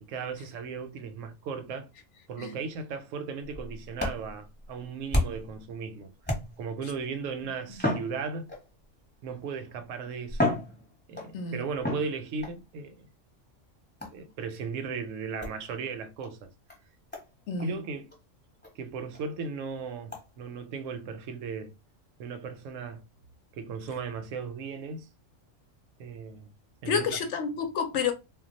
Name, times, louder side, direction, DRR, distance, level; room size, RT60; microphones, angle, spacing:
voice 1, 0.0-1.9 2.3-6.1 6.6-8.5 9.2-10.6 11.1-13.1 14.1-16.5 17.6-18.1 18.8-21.7 22.2-23.0 23.6-25.1 26.0-26.5 26.8-27.2, right 5 dB, 75° right, 0.9 m, -36 dB
sound 1, 3.5-5.6 6.2-6.8 7.7-8.8 9.7-9.8 10.3-11.4 11.8-12.6 14.0-14.3 15.4-15.6 16.2-16.3 16.7-16.8 17.1-17.3 17.6-17.7 18.1-18.2 18.6-18.7 19.1-19.2 20.1-20.2, left 1 dB, 10° left, 0.9 m, -32 dB
voice 2, 26.9-28.1, left 5 dB, 70° left, 0.9 m, -29 dB
2.2 x 2.2 x 3.8 m
omnidirectional pair, 1.3 m